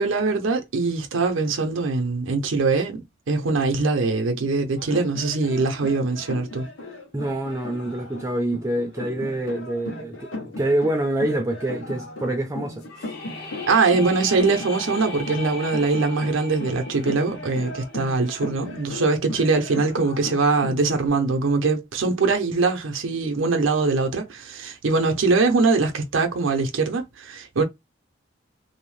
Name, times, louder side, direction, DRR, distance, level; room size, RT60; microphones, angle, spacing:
voice 1, 0.0-6.7 13.7-27.6, right 3 dB, 85° right, 0.5 m, -22 dB
sound 1, 4.8-21.1, left 1 dB, 85° left, 1.1 m, -37 dB
voice 2, 7.1-13.1, right 1 dB, 15° right, 0.4 m, -26 dB
sound 2, 12.8-18.7, left 1 dB, 55° left, 0.7 m, -38 dB
2.6 x 2.0 x 3.1 m
head